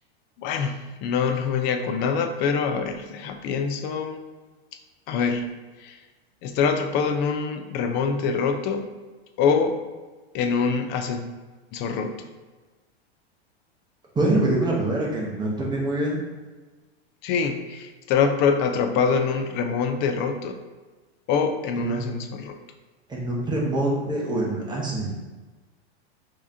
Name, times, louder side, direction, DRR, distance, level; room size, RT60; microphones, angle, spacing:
voice 1, 0.4-4.2 5.1-5.5 5.8-6.0 6.4-8.9 9.4-9.8 10.3-11.3 11.7-12.3 17.2-20.6 21.3-22.6, left 5 dB, 35° left, 6 dB, 0.4 m, -25 dB
voice 2, 14.1-16.2 21.8-22.0 23.1-25.1, right 1 dB, 15° right, -3 dB, 0.8 m, -25 dB
4.7 x 2.9 x 2.5 m, 1.3 s
hypercardioid pair, 110°, 32 cm